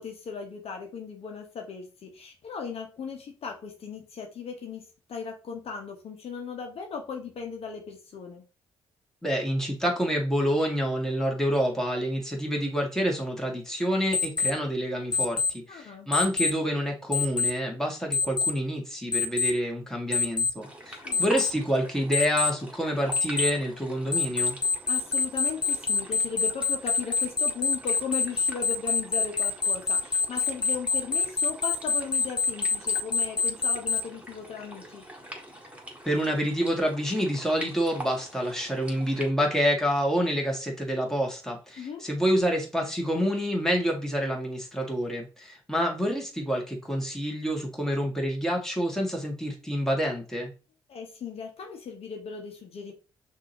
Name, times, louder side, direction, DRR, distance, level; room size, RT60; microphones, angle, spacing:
voice 1, 0.0-8.4 15.7-16.1 21.0-21.3 24.9-35.0 41.8-42.0 50.9-52.9, left 5 dB, 55° left, 2 dB, 1.1 m, -37 dB
voice 2, 9.2-24.6 36.0-50.5, equal, 5° left, 0 dB, 2.0 m, -28 dB
Alarm, 14.1-14.5 15.1-15.5 16.1-16.5 17.1-17.5 18.1-18.5 19.1-19.5 20.1-20.5 21.1-21.5 22.1-22.5 23.1-23.5 24.1-34.0, left 4 dB, 35° left, 0.6 m, -25 dB
sound 1, 20.6-39.3, equal, 10° right, 1.9 m, -45 dB
6.0 x 2.8 x 3.0 m, 0.33 s
hypercardioid pair, 40°, 12 cm